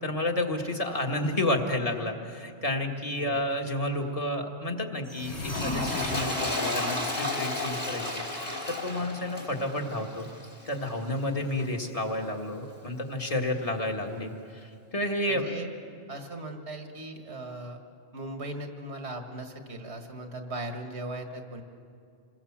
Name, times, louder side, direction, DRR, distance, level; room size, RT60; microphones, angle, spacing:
voice 1, 0.0-10.3 10.7-15.5, left 1 dB, 30° left, 3 dB, 1.8 m, -31 dB
voice 2, 3.2-3.6 11.4-11.6 15.3-15.7 16.1-17.8 18.1-21.6, right 1 dB, 75° right, 4 dB, 2.0 m, -38 dB
sound 1, 5.0-8.4, left 2 dB, 90° left, 4.5 m, -39 dB
Toilet flush, 5.4-10.9 11.6-11.7, left 2 dB, 60° left, 5.3 m, -32 dB
28.0 x 20.5 x 7.4 m, 2.4 s
omnidirectional pair, 1.1 m